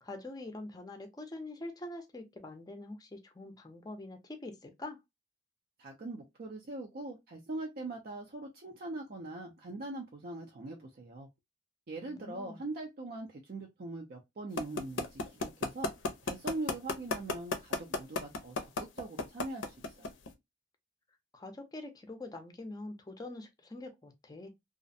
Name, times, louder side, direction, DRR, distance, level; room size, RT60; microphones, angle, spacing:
voice 1, 0.0-5.0 12.0-12.6 21.3-24.5, left 2 dB, 20° left, 0.5 m, -44 dB
voice 2, 5.8-11.3 11.9-15.9 16.2-20.1, right 2 dB, 50° right, 0.5 m, -42 dB
sound 1, 14.6-20.3, left 3 dB, 80° left, 0.5 m, -31 dB
2.4 x 2.1 x 2.5 m
head